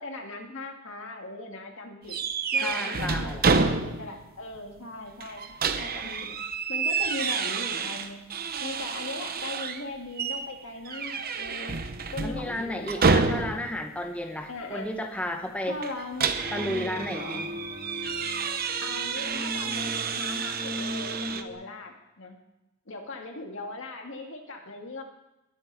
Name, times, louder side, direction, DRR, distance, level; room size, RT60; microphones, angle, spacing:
voice 1, 0.0-2.2 2.5-8.2 8.6-11.8 12.1-13.3 14.5-14.9 15.7-17.5 18.8-22.4 22.9-25.0, left 2 dB, 65° left, 2 dB, 2.1 m, -39 dB
sound 1, 2.1-4.3 4.6-4.7 5.2-9.8 10.2-10.5 10.9-13.8 15.8-21.4, right 5 dB, 45° right, 0.9 m, -29 dB
voice 2, 2.6-3.4 12.2-15.8 16.5-17.5, left 1 dB, 5° left, 3 dB, 0.9 m, -33 dB
sound 2, 16.4-21.5, left 1 dB, 15° right, 2.4 m, -38 dB
20.5 x 9.0 x 4.0 m, 0.97 s
head